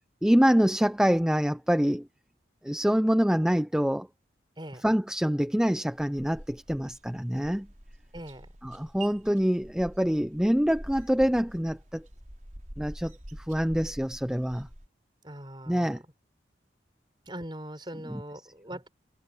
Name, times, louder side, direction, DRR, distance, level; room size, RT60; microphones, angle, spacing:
voice 1, 0.2-2.1 2.6-4.1 4.8-7.7 8.6-12.1 12.8-14.7 15.7-16.0 18.0-18.2, equal, 5° right, 0.5 m, -25 dB
sound 1, 5.6-14.9, right 1 dB, 45° right, 5.7 m, -46 dB
voice 2, 8.1-8.5 15.2-16.0 17.3-18.9, right 1 dB, 25° right, 6.4 m, -41 dB
head